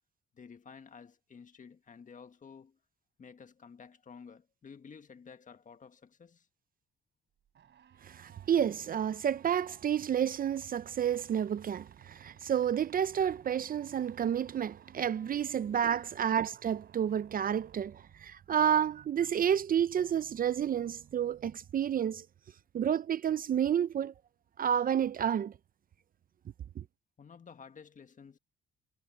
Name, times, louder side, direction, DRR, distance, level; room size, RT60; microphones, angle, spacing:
voice 1, 0.3-2.8 3.2-6.5 15.5-15.6 16.1-16.2 27.2-28.4, left 6 dB, 40° left, 1.7 m, -52 dB
sound 1, 7.4-22.0, right 9 dB, 65° right, 3.6 m, -60 dB
voice 2, 8.0-22.3 22.7-24.1 24.6-25.5 26.8-26.9, right 9 dB, 45° right, 0.5 m, -30 dB
cardioid pair, 90°, 20 cm